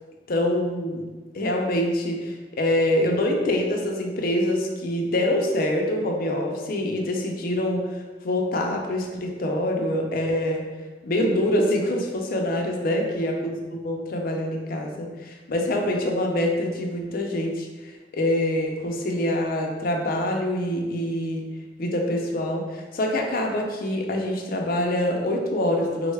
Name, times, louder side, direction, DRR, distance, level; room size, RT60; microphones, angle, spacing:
voice 1, 0.3-1.1 1.3-10.7 11.0-21.5 21.8-26.1, left 1 dB, 50° left, 1 dB, 0.5 m, -25 dB
3.5 x 2.2 x 3.2 m, 1.3 s
head